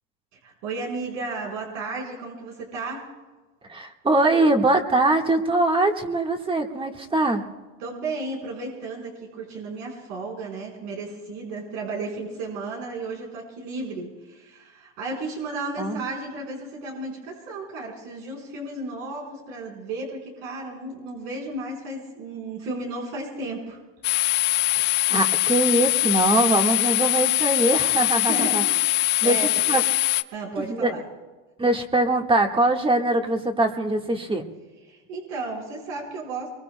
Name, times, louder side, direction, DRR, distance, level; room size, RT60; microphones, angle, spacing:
voice 1, 0.4-3.0 7.8-23.8 28.2-29.5 30.3-31.0 34.9-36.5, right 3 dB, 80° right, -1 dB, 4.6 m, -34 dB
voice 2, 3.7-7.4 15.8-16.0 25.1-28.6 29.2-29.8 30.6-30.9 31.6-34.4, right 2 dB, 15° right, 4 dB, 1.5 m, -22 dB
sound 1, 24.0-30.2, left 18 dB, 55° left, 0.6 m, -22 dB
24.5 x 23.0 x 2.2 m, 1.2 s
supercardioid pair, 125°, 39 cm